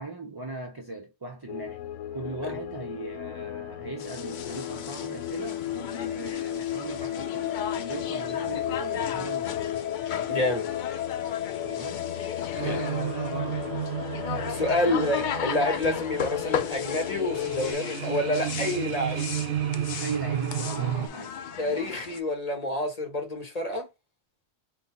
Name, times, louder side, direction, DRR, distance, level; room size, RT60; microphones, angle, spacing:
voice 1, 0.0-1.8 2.1-9.7 11.6-12.1 12.6-14.0 14.3-15.2 20.0-21.4, right 2 dB, 30° right, 0.4 m, -39 dB
sound 1, 1.5-17.7, left 11 dB, 85° left, 0.9 m, -34 dB
sound 2, 4.0-22.2, left 8 dB, 60° left, 0.5 m, -36 dB
voice 2, 10.3-10.7 12.6-12.8 14.4-19.3 21.6-23.9, left 1 dB, 35° left, 1.2 m, -28 dB
sound 3, 12.5-21.1, right 11 dB, 65° right, 0.8 m, -33 dB
4.0 x 2.2 x 4.2 m
omnidirectional pair, 1.2 m